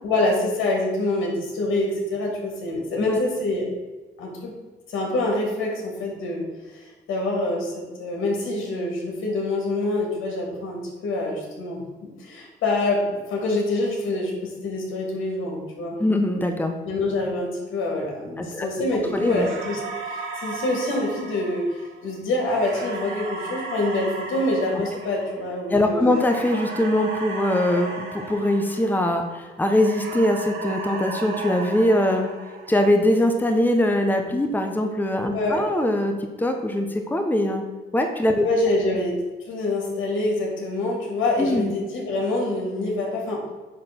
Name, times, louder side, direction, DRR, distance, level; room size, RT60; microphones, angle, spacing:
voice 1, 0.0-3.7 4.2-4.5 4.9-6.5 6.7-11.8 12.2-16.0 16.8-19.8 20.1-26.2 35.3-35.6 38.4-39.2 39.4-43.4, left 2 dB, 80° left, -1 dB, 3.2 m, -26 dB
voice 2, 16.0-16.7 18.4-18.7 19.1-19.5 25.7-32.3 32.7-37.6 37.9-38.4 41.4-41.7, left 1 dB, 10° left, 5 dB, 1.0 m, -22 dB
sound 1, 19.1-29.3 29.6-33.0, right 3 dB, 85° right, 1.9 m, -35 dB
9.7 x 3.9 x 7.1 m, 1.2 s
cardioid pair, 90°, 20 cm